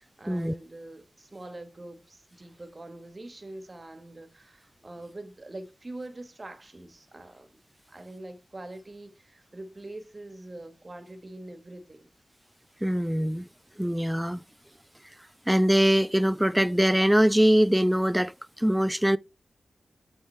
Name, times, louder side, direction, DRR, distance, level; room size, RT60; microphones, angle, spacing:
voice 1, 0.0-7.5 7.9-12.1, right 2 dB, 40° right, 1.2 m, -44 dB
voice 2, 12.8-13.5 13.8-14.4 15.5-19.2, equal, 5° right, 0.3 m, -22 dB
8.9 x 3.5 x 3.2 m
cardioid pair, 40°, 0 cm